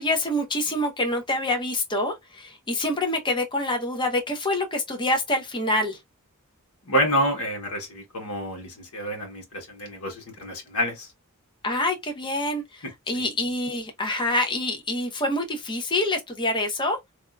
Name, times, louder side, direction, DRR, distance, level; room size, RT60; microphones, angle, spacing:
voice 1, 0.0-6.0 11.6-17.0, left 1 dB, 20° left, 0.7 m, -26 dB
voice 2, 6.9-11.1 13.1-13.3, equal, 80° left, 1.1 m, -28 dB
3.5 x 2.3 x 2.2 m
head